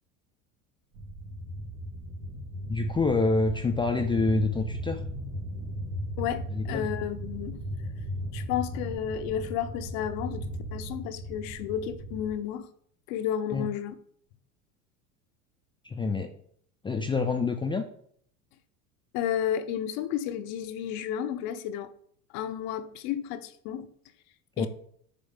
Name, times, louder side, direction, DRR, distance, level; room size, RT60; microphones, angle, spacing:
sound 1, 0.9-12.3, equal, 80° right, 2.4 m, -37 dB
voice 1, 2.7-5.0 6.5-6.8 13.5-13.7 15.8-16.3 16.8-17.8 24.6-24.7, left 3 dB, 15° left, 0.3 m, -27 dB
voice 2, 6.2-7.6 8.3-12.7 13.1-13.9 19.1-21.9 22.3-23.9 24.6-24.7, left 10 dB, 55° left, 0.6 m, -32 dB
6.6 x 3.9 x 3.6 m
hypercardioid pair, 90°, 42 cm